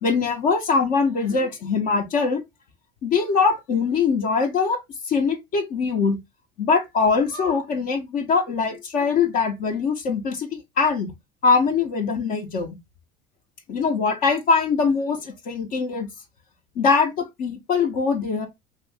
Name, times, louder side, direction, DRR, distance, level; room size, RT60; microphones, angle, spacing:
voice 1, 0.0-2.4 3.0-4.8 5.0-6.2 6.6-11.1 11.4-12.8 13.7-16.1 16.8-18.5, left 5 dB, 60° left, 0.9 m, -22 dB
2.8 x 2.5 x 3.3 m
supercardioid pair, 105°, 16 cm